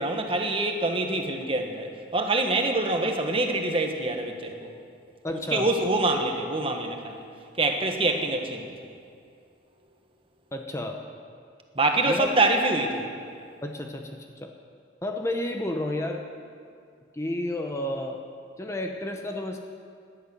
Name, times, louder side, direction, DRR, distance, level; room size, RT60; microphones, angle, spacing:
voice 1, 0.0-4.7 5.5-7.2 7.6-8.7 11.7-13.1, right 2 dB, 30° right, 4 dB, 1.3 m, -25 dB
voice 2, 5.2-5.7 10.5-11.0 12.0-12.3 13.6-14.5 15.0-16.2 17.1-18.2 18.6-19.6, left 1 dB, 15° left, 3 dB, 0.8 m, -31 dB
18.0 x 11.5 x 6.3 m, 2.3 s
head